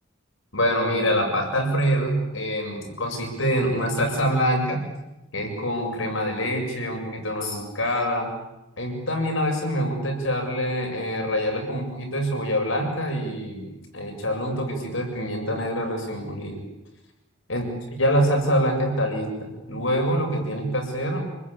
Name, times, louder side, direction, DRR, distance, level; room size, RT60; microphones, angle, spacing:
voice 1, 0.5-4.8 5.3-8.3 8.8-16.6 17.5-17.6 18.0-21.2, equal, 65° left, 2 dB, 7.5 m, -25 dB
29.0 x 21.0 x 8.6 m, 0.95 s
head